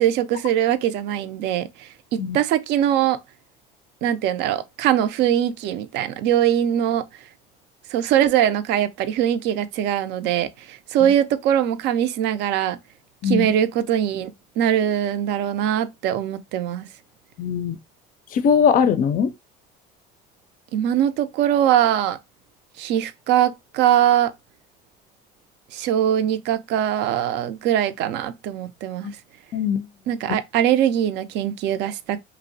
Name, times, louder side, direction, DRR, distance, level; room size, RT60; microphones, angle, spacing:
voice 1, 0.0-3.2 4.0-7.1 7.9-12.8 13.2-16.9 20.7-22.2 22.8-24.3 25.7-29.2 30.1-32.2, right 10 dB, 65° right, 0.4 m, -22 dB
voice 2, 17.4-17.8 18.3-19.3 29.5-29.9, left 7 dB, 50° left, 0.4 m, -20 dB
2.6 x 2.0 x 2.6 m
supercardioid pair, 100°, 19 cm